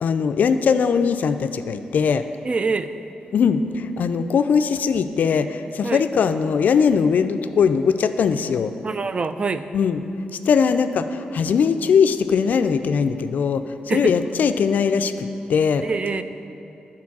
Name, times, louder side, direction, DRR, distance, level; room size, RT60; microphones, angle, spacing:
voice 1, 0.0-2.2 3.3-8.7 9.7-10.1 10.5-15.8, left 6 dB, 70° left, 10 dB, 0.3 m, -20 dB
voice 2, 2.4-2.9 5.8-6.0 8.8-9.6 13.9-14.1 15.8-16.2, right 4 dB, 40° right, 11 dB, 0.3 m, -24 dB
8.6 x 4.0 x 6.0 m, 2.7 s
cardioid pair, 80°, 3 cm